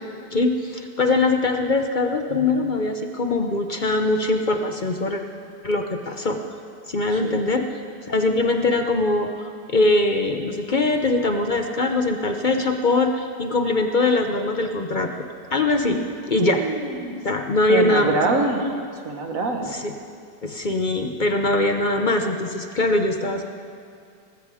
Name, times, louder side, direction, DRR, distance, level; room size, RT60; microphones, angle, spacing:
voice 1, 0.3-5.2 5.6-6.4 6.9-7.7 8.1-9.3 9.7-15.1 15.5-16.0 16.3-16.6 17.2-18.2 19.7-19.9 20.4-23.4, left 2 dB, 45° left, 5 dB, 0.6 m, -22 dB
voice 2, 7.1-7.4 16.0-17.2 17.7-18.8 19.1-19.7, right 3 dB, 50° right, 3 dB, 1.9 m, -25 dB
19.5 x 15.5 x 4.9 m, 2.3 s
omnidirectional pair, 1.9 m